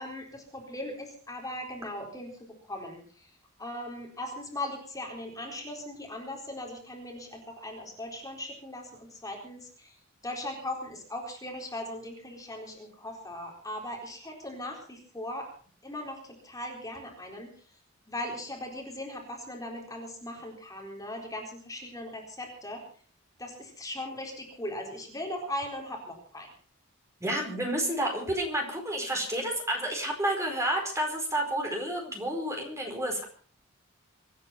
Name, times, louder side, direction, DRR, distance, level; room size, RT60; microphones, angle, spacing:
voice 1, 0.0-3.3 3.6-15.5 15.8-17.8 18.1-22.8 23.4-26.5, left 1 dB, 15° left, 1 dB, 4.1 m, -39 dB
voice 2, 27.2-33.2, right 1 dB, 15° right, 2 dB, 4.6 m, -30 dB
25.5 x 9.7 x 5.8 m, 0.44 s
head